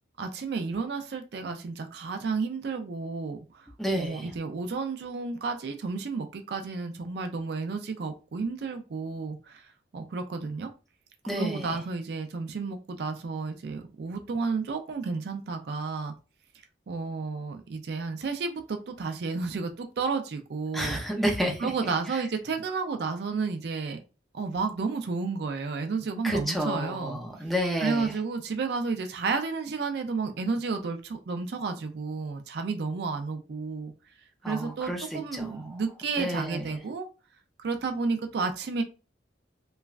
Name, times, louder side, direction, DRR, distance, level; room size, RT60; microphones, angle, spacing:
voice 1, 0.2-3.7 3.9-9.7 9.9-10.7 11.3-16.1 16.9-21.0 21.6-24.0 24.3-27.2 27.8-33.9 34.5-37.1 37.6-38.8, right 4 dB, 60° right, 6 dB, 0.4 m, -32 dB
voice 2, 3.8-4.3 11.2-11.8 20.7-21.7 22.1-22.2 26.2-28.1 34.4-35.8 36.2-36.8, equal, ahead, 0 dB, 0.5 m, -30 dB
3.0 x 2.3 x 2.3 m, 0.32 s
head